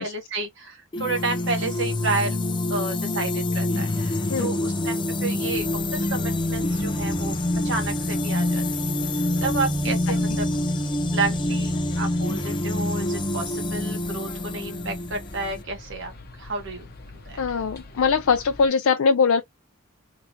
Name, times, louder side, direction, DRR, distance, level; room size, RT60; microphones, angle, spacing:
voice 1, 0.0-2.4 2.7-7.3 7.6-8.6 9.4-10.5 11.1-16.1 16.4-16.9 17.1-17.4, right 3 dB, 60° right, 1.5 m, -31 dB
sound 1, 0.9-15.6, left 1 dB, 20° left, 0.5 m, -26 dB
sound 2, 5.5-18.7, left 2 dB, 45° left, 1.0 m, -43 dB
voice 2, 17.4-19.4, left 5 dB, 75° left, 0.4 m, -21 dB
3.7 x 2.8 x 2.7 m
head